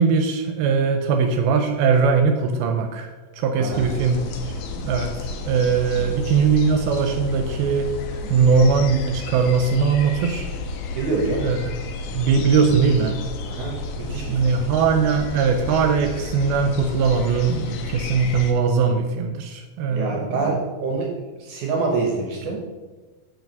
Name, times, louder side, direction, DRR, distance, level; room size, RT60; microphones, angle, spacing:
voice 1, 0.0-3.1 3.3-7.9 8.3-10.5 11.4-11.6 12.1-13.2 14.1-20.6, right 5 dB, 85° right, 6 dB, 2.4 m, -20 dB
voice 2, 3.6-3.9 6.0-6.1 8.2-8.5 10.9-11.5 13.4-14.5 19.9-21.1 21.4-22.6, right 3 dB, 65° right, -1 dB, 2.3 m, -26 dB
sound 1, 3.7-18.5, left 3 dB, 85° left, 2.6 m, -32 dB
6.0 x 4.7 x 6.6 m, 1.3 s
omnidirectional pair, 4.3 m